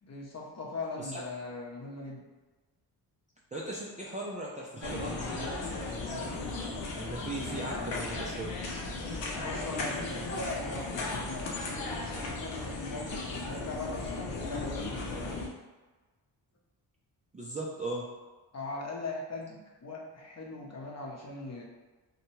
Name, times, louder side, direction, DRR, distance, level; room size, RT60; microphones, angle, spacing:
voice 1, 0.0-2.2 9.3-15.3 18.5-21.6, left 2 dB, 40° left, -2 dB, 0.7 m, -40 dB
voice 2, 3.5-6.0 7.0-8.5 17.3-18.1, right 2 dB, 20° right, -5 dB, 0.3 m, -38 dB
sound 1, 4.8-15.5, left 3 dB, 85° left, 0.7 m, -36 dB
2.7 x 2.2 x 3.0 m, 1.2 s
cardioid pair, 85°, 43 cm